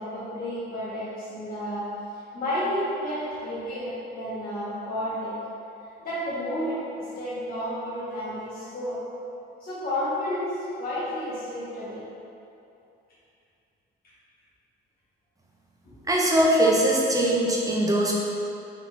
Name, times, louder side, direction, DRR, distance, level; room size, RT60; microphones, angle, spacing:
voice 1, 0.0-1.9 2.3-5.3 6.0-9.0 9.6-12.0 15.8-16.0, left 1 dB, 50° left, -11 dB, 1.3 m, -31 dB
voice 2, 16.1-18.1, right 1 dB, 15° right, -4 dB, 0.7 m, -21 dB
4.0 x 4.0 x 2.5 m, 2.7 s
cardioid pair, 90°, 20 cm